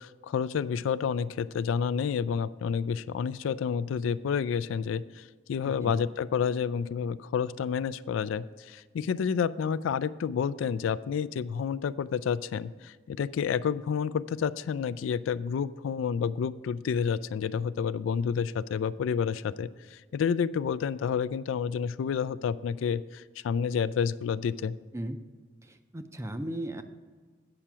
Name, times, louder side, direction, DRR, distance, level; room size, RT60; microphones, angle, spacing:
voice 1, 0.0-24.8, left 7 dB, 85° left, 16 dB, 0.3 m, -29 dB
voice 2, 5.6-6.0 24.9-25.2 25.6-26.8, right 1 dB, 15° right, 8 dB, 0.4 m, -36 dB
8.8 x 5.6 x 6.0 m, 1.5 s
head